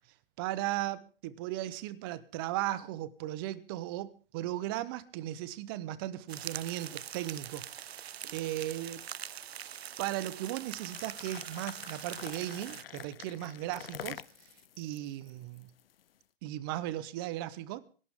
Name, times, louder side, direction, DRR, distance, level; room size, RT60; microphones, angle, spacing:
voice 1, 0.4-9.0 10.0-15.7 16.4-17.8, right 14 dB, 25° right, 0.8 m, -37 dB
sound 1, 6.3-12.8, right 9 dB, 85° right, 0.6 m, -43 dB
sound 2, 10.8-16.0, left 10 dB, 70° left, 0.7 m, -47 dB
26.0 x 12.0 x 3.6 m
hypercardioid pair, 155°, 30 cm